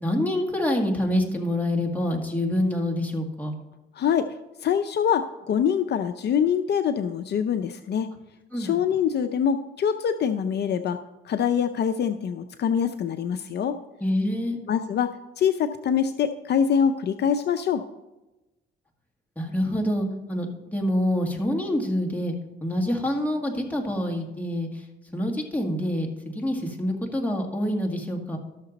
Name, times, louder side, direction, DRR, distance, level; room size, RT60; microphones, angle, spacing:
voice 1, 0.0-3.6 8.5-8.8 14.0-14.6 19.4-22.3 22.6-24.8 25.1-28.4, left 1 dB, 10° left, 1 dB, 2.0 m, -26 dB
voice 2, 4.0-4.3 4.6-8.1 8.6-13.8 14.7-17.8, left 8 dB, 60° left, 9 dB, 0.5 m, -24 dB
12.5 x 6.6 x 4.0 m, 1.0 s
cardioid pair, 90°, 20 cm